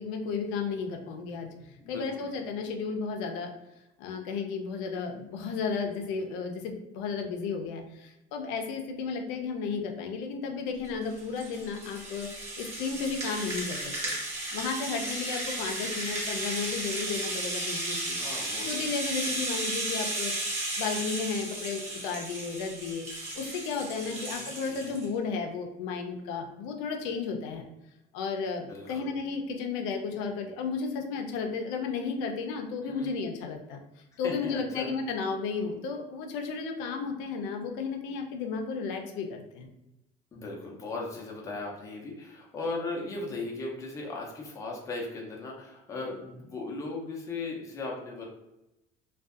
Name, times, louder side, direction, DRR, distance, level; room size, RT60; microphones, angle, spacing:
voice 1, 0.0-3.5 4.0-18.2 18.6-20.5 20.8-27.7 28.1-33.8 34.2-39.7, left 5 dB, 80° left, 3 dB, 0.5 m, -33 dB
voice 2, 1.8-2.3 18.2-18.9 24.0-24.5 28.7-29.2 32.8-33.2 34.2-34.9 40.3-48.3, left 3 dB, 15° left, -2 dB, 0.4 m, -37 dB
Rattle (instrument), 10.8-25.1, right 1 dB, 35° right, 0.9 m, -34 dB
2.5 x 2.3 x 2.4 m, 0.93 s
cardioid pair, 155°, 20 cm